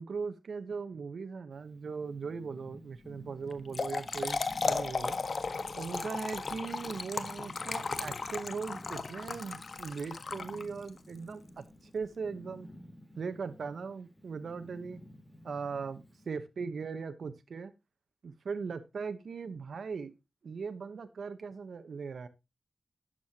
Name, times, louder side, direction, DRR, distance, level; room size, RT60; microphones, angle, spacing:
voice 1, 0.0-4.4 4.6-5.2 5.8-12.7 13.2-15.0 15.4-17.7 18.2-20.1 20.4-22.3, right 5 dB, 80° right, 1.0 m, -39 dB
Purr, 1.5-16.3, equal, 5° left, 7.3 m, -53 dB
Trickle dribble / Fill (with liquid), 3.5-11.0, left 4 dB, 65° left, 1.5 m, -35 dB
12.5 x 9.2 x 2.8 m
cardioid pair, 60°, 0 cm